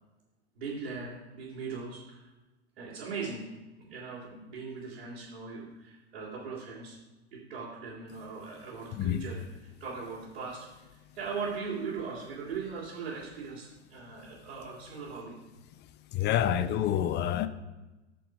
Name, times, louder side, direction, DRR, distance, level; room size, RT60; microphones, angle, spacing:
voice 1, 0.5-2.3 2.8-3.5 3.8-7.0 7.3-10.9 11.1-15.4, right 5 dB, 70° right, 2.9 m, -39 dB
voice 2, 15.8-17.5, left 10 dB, 30° left, 0.7 m, -28 dB
8.0 x 6.4 x 5.2 m
hypercardioid pair, 95°, 32 cm